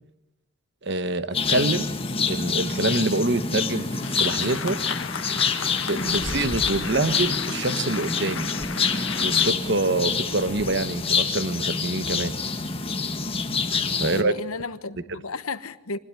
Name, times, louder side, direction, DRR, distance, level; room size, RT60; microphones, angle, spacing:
voice 1, 0.8-1.9 2.3-4.8 5.9-8.5 9.2-12.3 14.0-14.3, right 2 dB, 55° right, 1.1 m, -26 dB
sound 1, 1.3-14.2, left 5 dB, 25° left, 1.6 m, -26 dB
sound 2, 4.0-9.5, left 6 dB, 70° left, 1.5 m, -35 dB
voice 2, 14.0-16.0, left 3 dB, 90° left, 1.2 m, -34 dB
25.5 x 20.5 x 9.0 m
head